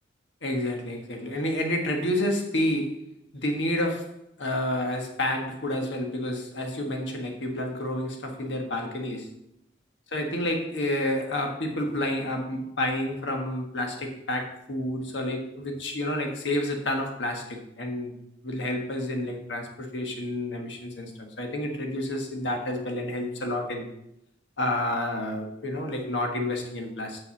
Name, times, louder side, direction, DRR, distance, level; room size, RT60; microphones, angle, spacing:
voice 1, 0.4-3.0 3.3-9.3 10.1-18.1 18.4-21.1 21.4-23.9 24.6-27.2, left 1 dB, 85° left, 3 dB, 1.5 m, -29 dB
6.5 x 5.5 x 7.1 m, 0.83 s
head